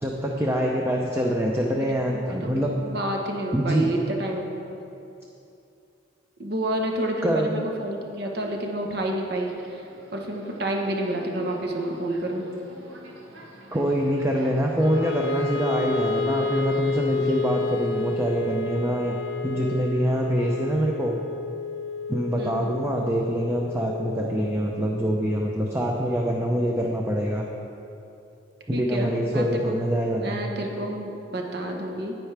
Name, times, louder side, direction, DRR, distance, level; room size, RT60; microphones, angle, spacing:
voice 1, 0.0-2.8 3.5-3.9 7.2-7.6 13.7-19.1 19.4-21.2 22.1-27.5 28.7-30.4, equal, 15° right, -1 dB, 0.5 m, -25 dB
voice 2, 1.8-4.8 6.4-9.8 10.1-12.5 22.4-22.8 28.7-29.8 30.1-32.2, right 1 dB, 55° right, 1 dB, 1.1 m, -29 dB
Subway metro underground, 9.3-18.2, right 1 dB, 80° right, 1.1 m, -46 dB
Wind instrument woodwind instrument, 14.8-27.0, left 4 dB, 65° left, 0.4 m, -31 dB
10.5 x 9.1 x 3.4 m, 2.7 s
head